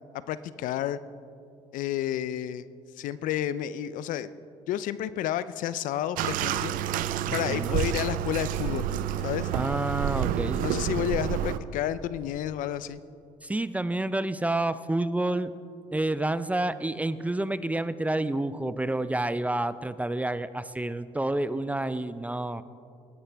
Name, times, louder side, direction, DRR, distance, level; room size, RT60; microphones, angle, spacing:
voice 1, 0.3-1.0 1.7-2.7 3.0-4.3 4.7-6.7 7.3-8.9 9.2-9.5 10.6-13.0, left 11 dB, 70° left, 15 dB, 0.5 m, -30 dB
Bathtub (filling or washing), 6.2-11.6, right 11 dB, 75° right, 0.5 m, -29 dB
voice 2, 7.3-7.8 9.5-10.7 13.4-15.5 15.9-22.6, right 2 dB, 10° right, 14 dB, 0.4 m, -29 dB
18.5 x 11.0 x 3.4 m, 2.5 s
supercardioid pair, 70°, 14 cm